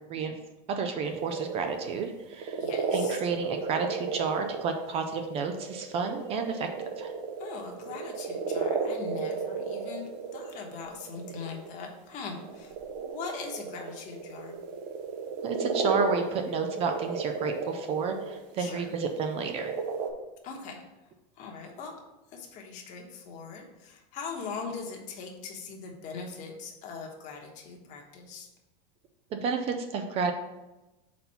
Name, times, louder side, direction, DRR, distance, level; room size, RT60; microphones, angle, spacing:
voice 1, 0.7-2.6 2.9-6.7 7.0-7.1 15.4-19.7 29.3-30.3, right 5 dB, 30° right, 6 dB, 0.4 m, -31 dB
sound 1, 1.0-11.8 12.2-18.4 18.8-20.1, right 5 dB, 55° right, 0.9 m, -34 dB
voice 2, 2.6-3.2 7.4-14.6 18.6-18.9 20.4-20.8 21.4-22.0 22.3-28.5, left 5 dB, 40° left, 1 dB, 1.2 m, -41 dB
4.2 x 4.1 x 5.6 m, 1.0 s
supercardioid pair, 150°, 20 cm